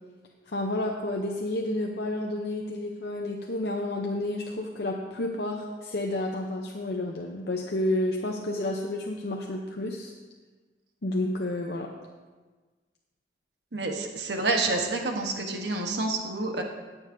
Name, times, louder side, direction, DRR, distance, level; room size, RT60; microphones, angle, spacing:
voice 1, 0.5-10.1 11.0-11.9, left 1 dB, 65° left, 0 dB, 0.7 m, -30 dB
voice 2, 13.7-16.6, right 3 dB, 75° right, 3 dB, 1.1 m, -28 dB
19.0 x 7.1 x 2.7 m, 1.3 s
head